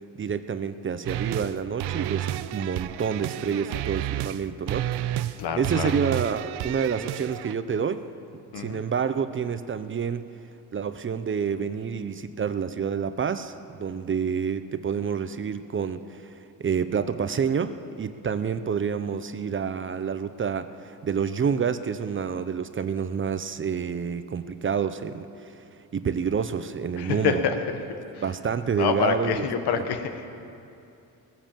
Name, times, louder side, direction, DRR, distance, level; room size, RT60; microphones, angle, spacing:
voice 1, 0.2-5.1 5.6-8.0 8.6-10.3 10.7-25.6 25.9-27.4 28.2-29.4, right 6 dB, 30° right, 11 dB, 0.6 m, -28 dB
sound 1, 1.0-1.5 1.8-4.4 4.7-5.4 5.6-7.5, right 13 dB, 90° right, 0.6 m, -31 dB
voice 2, 5.4-5.9 8.5-8.8 27.0-27.8 28.1-28.2 28.8-30.2, left 6 dB, 80° left, 7 dB, 1.4 m, -27 dB
18.0 x 10.0 x 7.5 m, 2.6 s
cardioid pair, 100°, 39 cm